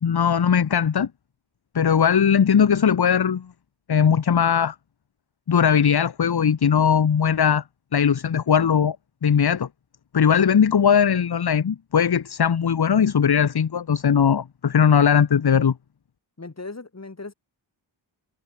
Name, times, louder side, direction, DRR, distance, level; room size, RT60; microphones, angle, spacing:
voice 1, 0.0-1.1 1.7-3.5 3.9-4.7 5.5-7.6 7.9-9.0 9.2-9.7 10.1-15.7, left 7 dB, 50° left, 1.2 m, -19 dB
voice 2, 16.4-17.3, left 3 dB, 30° left, 5.7 m, -37 dB
wide cardioid pair, 110°, 48 cm